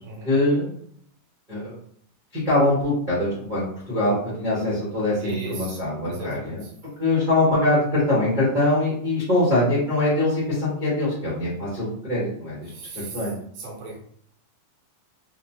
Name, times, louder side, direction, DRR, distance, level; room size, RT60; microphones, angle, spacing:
voice 1, 0.2-0.7 1.5-1.7 2.3-6.6 7.0-12.7 12.9-13.4, left 1 dB, 45° right, -10 dB, 0.6 m, -23 dB
voice 2, 5.2-6.7 12.7-13.2 13.6-14.0, right 3 dB, 85° right, -3 dB, 2.6 m, -37 dB
5.5 x 2.3 x 2.8 m, 0.65 s
omnidirectional pair, 3.6 m